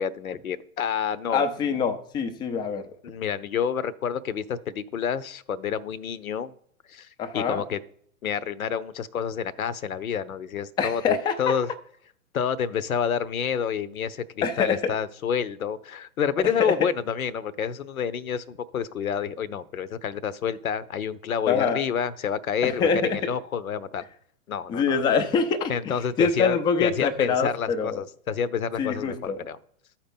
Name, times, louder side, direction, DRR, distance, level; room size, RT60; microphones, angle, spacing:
voice 1, 0.0-1.8 3.0-6.5 6.9-7.1 7.3-7.8 8.2-11.7 12.3-24.0 24.5-25.0 25.7-29.6, left 7 dB, 85° left, 16 dB, 0.7 m, -29 dB
voice 2, 1.3-2.9 7.2-7.6 10.8-11.6 14.4-15.0 16.6-16.9 21.5-21.9 22.6-23.3 24.7-28.0 28.8-29.4, left 5 dB, 10° left, 7 dB, 0.4 m, -25 dB
13.0 x 4.4 x 5.2 m, 0.63 s
hypercardioid pair, 115°, 42 cm